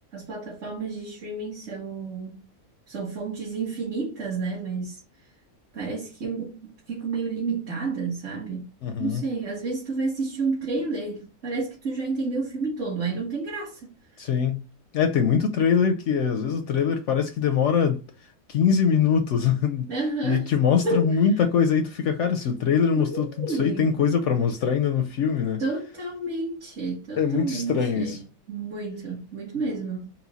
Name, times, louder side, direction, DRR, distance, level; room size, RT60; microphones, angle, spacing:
voice 1, 0.1-2.5 2.9-5.0 5.7-8.7 9.0-14.2 19.9-20.5 20.8-21.2 23.0-23.9 25.6-30.1, right 3 dB, 50° right, 1.4 m, -30 dB
voice 2, 8.8-9.2 14.2-14.6 14.9-18.0 18.5-19.9 20.2-25.6 27.2-28.2, left 7 dB, 65° left, 0.8 m, -23 dB
4.3 x 2.2 x 4.0 m
omnidirectional pair, 1.5 m